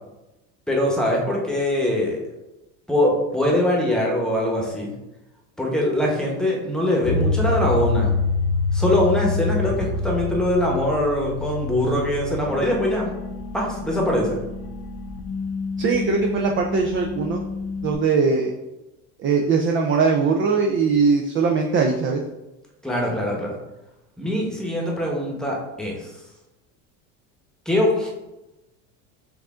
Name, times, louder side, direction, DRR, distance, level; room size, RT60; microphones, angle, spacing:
voice 1, 0.7-2.2 2.9-4.9 5.6-8.1 8.7-13.1 13.5-14.4 22.8-23.6 24.2-26.1 27.7-28.1, left 1 dB, ahead, -2 dB, 1.0 m, -22 dB
sound 1, 7.0-17.9, left 3 dB, 65° left, 0.6 m, -27 dB
voice 2, 15.8-17.4 17.8-18.5 19.2-22.2, right 5 dB, 30° right, 1 dB, 0.4 m, -20 dB
4.7 x 2.5 x 3.6 m, 0.99 s
supercardioid pair, 110°, 40 cm